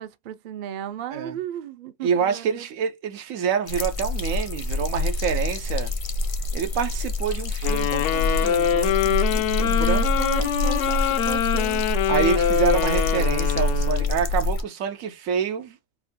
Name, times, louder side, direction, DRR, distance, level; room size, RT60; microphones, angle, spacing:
voice 1, 0.0-2.7 10.2-11.8, right 10 dB, 60° right, 0.5 m, -35 dB
voice 2, 2.0-5.9 6.5-10.1 12.1-15.8, right 7 dB, 85° right, 1.1 m, -27 dB
sound 1, 3.7-14.6, left 1 dB, 45° left, 0.4 m, -26 dB
sound 2, 7.6-14.2, left 10 dB, 70° left, 0.8 m, -24 dB
4.6 x 2.2 x 2.6 m
omnidirectional pair, 1.4 m